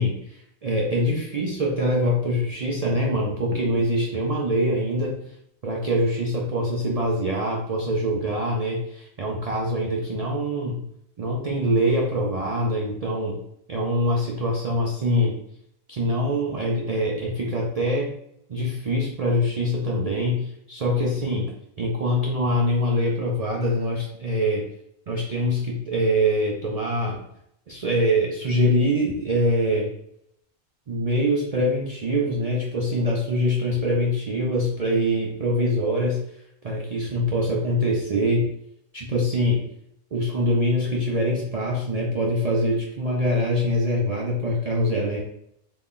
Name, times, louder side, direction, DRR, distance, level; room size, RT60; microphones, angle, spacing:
voice 1, 0.0-5.3 5.6-10.8 11.2-13.4 13.7-15.4 15.9-18.1 18.5-24.7 25.1-27.2 27.7-29.9 30.9-36.2 36.6-38.5 38.9-39.7 40.1-45.2, equal, 85° right, -1 dB, 0.3 m, -24 dB
3.9 x 2.3 x 3.7 m, 0.73 s
omnidirectional pair, 1.4 m